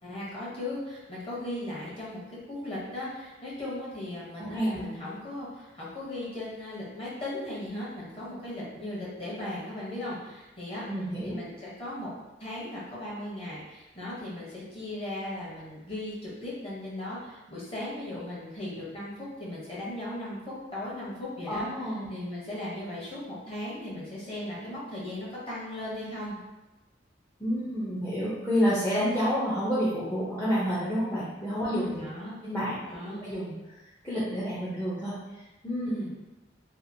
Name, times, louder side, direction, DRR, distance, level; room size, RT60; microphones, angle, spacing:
voice 1, 0.0-10.8 11.2-12.1 12.4-21.7 22.1-26.4 31.7-32.4 32.9-33.2 35.8-36.1, left 1 dB, 30° left, -7 dB, 0.9 m, -37 dB
voice 2, 4.4-4.9 10.9-11.4 21.5-22.1 27.4-32.0 32.4-32.8 33.1-33.8 34.0-35.9, equal, 10° left, -11 dB, 0.5 m, -29 dB
2.8 x 2.4 x 2.6 m, 1.0 s
head